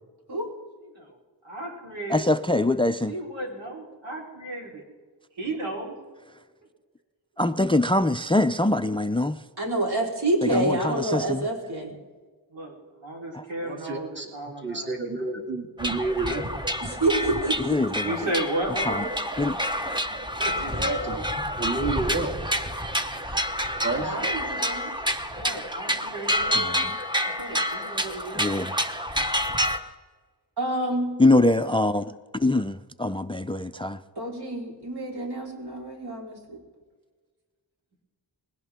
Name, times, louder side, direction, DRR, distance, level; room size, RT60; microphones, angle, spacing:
voice 1, 0.8-1.1 1.4-2.3 3.1-4.8 5.4-6.0 12.5-15.0 18.0-19.0 20.4-21.2 25.3-26.6 27.3-28.4, right 1 dB, 90° right, 4.2 m, -34 dB
voice 2, 2.1-3.1 7.4-9.4 10.4-11.5 13.3-13.4 17.6-18.2 18.9-19.0 19.4-19.6 26.6-26.7 28.4-28.7 31.2-34.0, left 2 dB, 15° left, 0.4 m, -23 dB
voice 3, 9.6-12.0 16.8-17.8 24.0-24.9 30.6-31.2 34.2-36.6, right 2 dB, 60° right, 4.1 m, -28 dB
voice 4, 13.6-14.3 14.6-16.5 20.7-21.1 21.6-22.3 23.8-24.2, right 3 dB, 25° right, 2.3 m, -29 dB
sound 1, 15.8-29.8, equal, 10° right, 1.0 m, -28 dB
20.5 x 17.0 x 3.6 m
wide cardioid pair, 85°, 43 cm